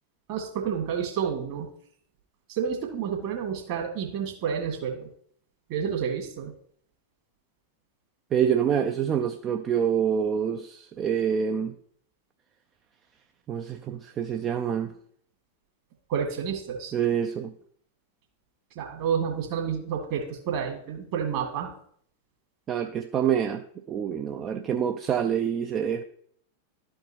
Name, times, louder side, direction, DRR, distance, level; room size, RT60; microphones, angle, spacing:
voice 1, 0.3-1.7 2.5-5.1 5.7-6.5 16.1-16.9 18.8-21.7, right 7 dB, 50° right, 2.1 m, -30 dB
voice 2, 8.3-11.7 13.5-14.9 16.9-17.5 22.7-26.0, right 8 dB, 30° right, 0.4 m, -26 dB
12.5 x 4.5 x 2.9 m
figure-of-eight pair, 90°, 0 cm